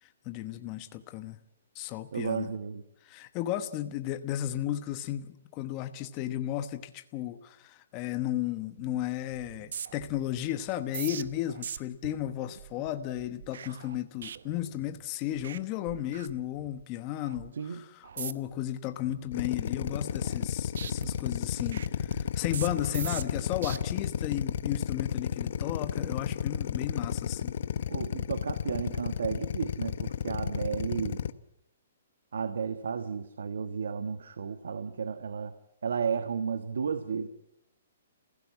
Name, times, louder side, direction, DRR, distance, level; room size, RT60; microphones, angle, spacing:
voice 1, 0.0-1.4 1.7-2.5 3.1-27.5, left 12 dB, 25° left, 10 dB, 1.0 m, -34 dB
voice 2, 2.1-2.8 17.5-17.8 27.9-31.2 32.3-35.5 35.8-37.3, right 6 dB, 85° right, 10 dB, 1.4 m, -33 dB
sound 1, 8.8-9.1 9.3-15.1 15.4-15.6 15.9-16.8 17.2-17.5 18.0-18.6 19.0-20.5 20.8-23.8 24.3-24.6, right 8 dB, 70° right, 1.1 m, -42 dB
Drill, 19.3-31.3, left 8 dB, 60° left, 1.0 m, -32 dB
30.0 x 16.0 x 8.4 m, 0.81 s
hypercardioid pair, 160°, 0 cm